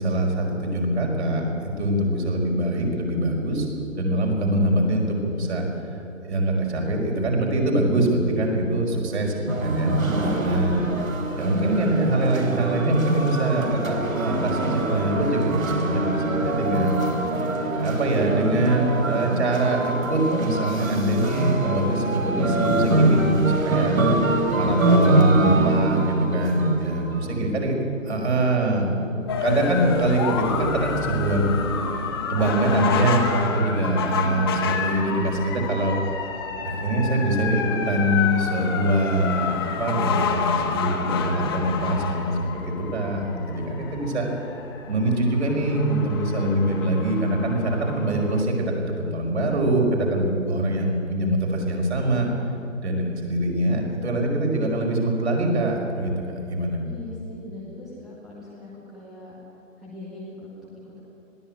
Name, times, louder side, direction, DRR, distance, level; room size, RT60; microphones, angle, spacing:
voice 1, 0.0-3.7 4.0-5.6 6.3-9.3 9.6-10.0 10.4-10.9 11.4-17.0 17.8-24.0 24.5-27.7 28.0-29.0 29.4-31.5 32.3-36.0 36.8-44.2 44.9-52.3 52.8-56.1 56.4-56.8, right 1 dB, 55° right, 0 dB, 5.4 m, -23 dB
voice 2, 9.3-9.8 27.2-27.5 28.0-28.4 29.1-29.4 34.1-34.4 56.8-59.4 59.8-61.0, left 2 dB, ahead, -7 dB, 0.9 m, -41 dB
sound 1, 9.5-27.3, right 2 dB, 80° right, 3.6 m, -24 dB
sound 2, 29.3-48.4, left 6 dB, 20° left, 1.1 m, -29 dB
21.0 x 15.5 x 9.2 m, 2.8 s
figure-of-eight pair, 155°, 40 cm